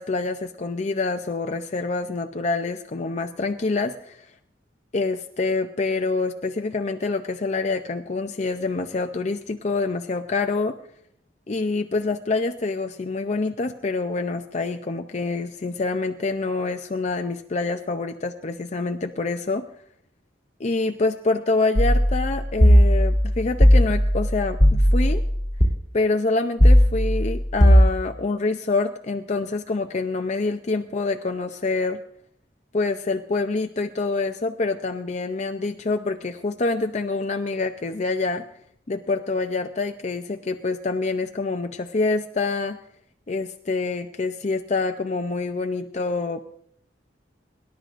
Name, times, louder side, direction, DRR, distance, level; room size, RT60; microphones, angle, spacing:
voice 1, 0.0-4.3 4.9-10.8 11.5-19.6 20.6-25.2 25.9-32.0 32.7-38.4 38.9-42.8 43.3-46.4, left 3 dB, 40° left, 6 dB, 0.5 m, -26 dB
sound 1, 21.8-25.7 26.6-27.9, equal, 20° left, 1.8 m, -17 dB
24.0 x 11.5 x 2.5 m, 0.67 s
head